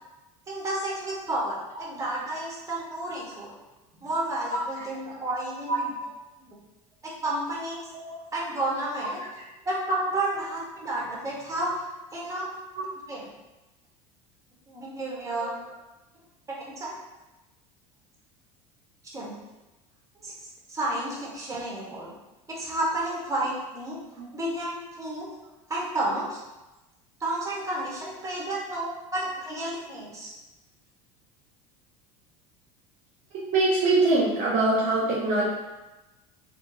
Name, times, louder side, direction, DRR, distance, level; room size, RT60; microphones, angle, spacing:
voice 1, 0.5-3.5 4.0-5.9 7.2-7.8 8.3-9.2 9.6-11.8 12.1-12.5 13.1-13.3 14.7-15.5 16.6-16.9 19.1-19.4 20.2-20.3 20.7-22.1 22.5-24.0 24.3-25.3 25.7-26.4 27.2-30.3, right 1 dB, 20° right, -5 dB, 1.3 m, -31 dB
voice 2, 4.5-4.8 5.7-5.8 7.9-8.2 12.7-12.9 15.4-15.5 24.2-24.3 33.5-35.4, right 2 dB, 45° right, -5 dB, 0.8 m, -24 dB
3.6 x 2.3 x 2.7 m, 1.0 s
hypercardioid pair, 85°, 17 cm